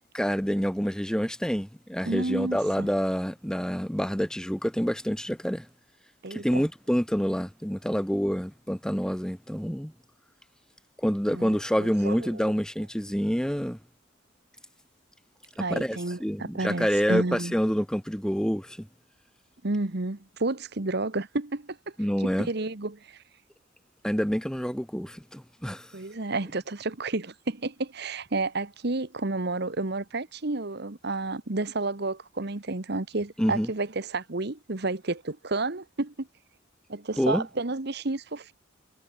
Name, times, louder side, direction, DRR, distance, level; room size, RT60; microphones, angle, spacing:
voice 1, 0.1-5.7 6.3-9.9 11.0-13.8 15.6-18.9 22.0-22.5 24.0-25.9 33.4-33.7 37.2-37.4, equal, 5° left, 1.6 m, -27 dB
voice 2, 2.1-2.9 6.2-6.6 11.3-12.5 15.6-17.6 19.6-21.8 22.4-23.2 25.9-36.3 36.9-38.5, right 2 dB, 55° right, 1.3 m, -31 dB
head